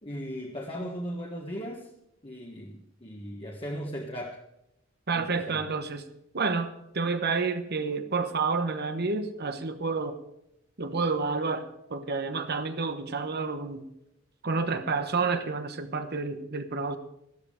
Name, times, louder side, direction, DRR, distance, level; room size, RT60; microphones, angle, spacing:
voice 1, 0.0-1.9 2.2-4.4 5.1-5.6, equal, 30° left, -1 dB, 1.6 m, -37 dB
voice 2, 5.1-6.0 6.3-10.2 10.8-13.8 14.4-17.0, right 4 dB, 50° right, 8 dB, 1.2 m, -29 dB
14.0 x 13.0 x 5.0 m, 0.80 s
head